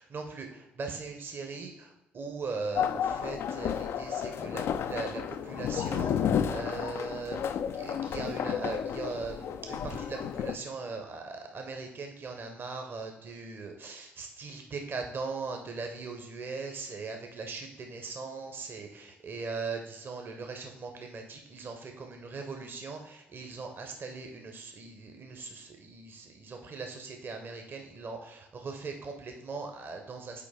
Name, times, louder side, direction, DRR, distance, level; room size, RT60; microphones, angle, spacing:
voice 1, 0.0-30.5, right 4 dB, 40° right, 4 dB, 0.8 m, -40 dB
sound 1, 2.7-10.6, left 8 dB, 50° left, 0.3 m, -32 dB
6.8 x 4.5 x 3.5 m, 0.93 s
figure-of-eight pair, 45°, 6 cm